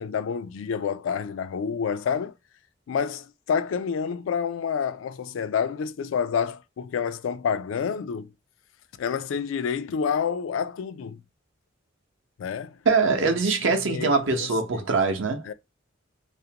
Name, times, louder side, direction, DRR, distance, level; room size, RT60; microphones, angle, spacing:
voice 1, 0.0-2.3 2.9-8.3 9.0-11.2 12.4-12.8 13.2-13.4 13.8-14.9 15.4-15.5, left 6 dB, 85° left, 0.3 m, -28 dB
voice 2, 12.9-15.4, right 4 dB, 80° right, 0.7 m, -23 dB
2.5 x 2.1 x 2.7 m
head